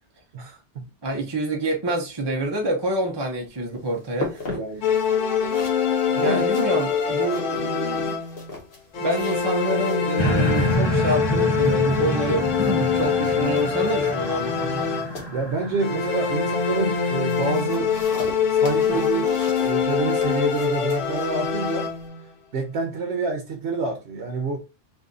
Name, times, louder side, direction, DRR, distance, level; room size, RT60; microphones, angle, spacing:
voice 1, 0.3-0.9 4.5-4.8 6.1-6.4 15.3-17.9 18.5-21.9 22.5-24.6, right 3 dB, 70° right, 1.0 m, -28 dB
voice 2, 1.0-4.6 4.9-5.0 6.2-8.2 9.0-14.9 18.9-19.0, right 1 dB, 30° right, 0.4 m, -27 dB
sound 1, 3.2-22.1, left 2 dB, 55° left, 1.1 m, -41 dB
sound 2, 4.8-8.5 8.9-15.4 15.8-22.2, left 6 dB, 85° left, 1.1 m, -24 dB
sound 3, 10.2-17.6 18.1-18.2, equal, 30° left, 0.6 m, -28 dB
2.6 x 2.6 x 3.6 m
omnidirectional pair, 1.2 m